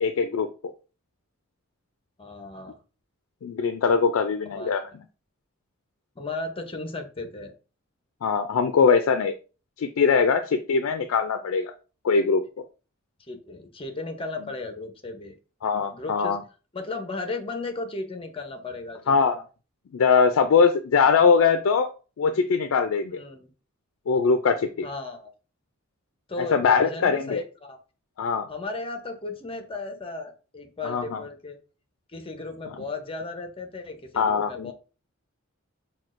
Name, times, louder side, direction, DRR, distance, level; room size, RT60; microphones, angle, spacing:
voice 1, 0.0-0.7 3.4-4.8 8.2-9.3 9.8-11.7 12.0-12.4 15.6-16.4 19.1-19.4 19.9-21.9 22.2-23.2 24.1-24.9 26.5-27.4 28.2-28.5 30.8-31.2 34.2-34.7, left 5 dB, 75° left, 8 dB, 0.4 m, -22 dB
voice 2, 2.2-2.7 4.5-4.9 6.2-7.5 13.3-15.3 15.9-16.4 16.7-19.1 23.2-23.5 24.8-25.3 26.3-27.8 28.5-31.6 32.1-34.7, left 3 dB, 25° left, 5 dB, 0.7 m, -35 dB
5.9 x 2.3 x 2.5 m, 0.35 s
head